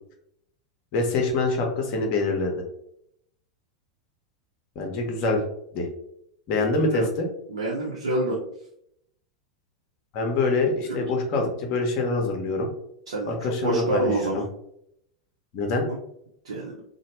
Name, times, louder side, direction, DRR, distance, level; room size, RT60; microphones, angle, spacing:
voice 1, 0.9-2.5 4.8-5.4 5.7-5.9 6.5-7.3 10.1-12.7 13.3-14.4 15.5-15.9, left 3 dB, 45° left, 2 dB, 0.8 m, -25 dB
voice 2, 7.5-8.4 10.9-11.0 13.1-14.5 15.9-16.0 16.4-16.7, right 2 dB, 70° right, -4 dB, 0.6 m, -27 dB
2.9 x 2.1 x 2.9 m, 0.74 s
figure-of-eight pair, 85°, 3 cm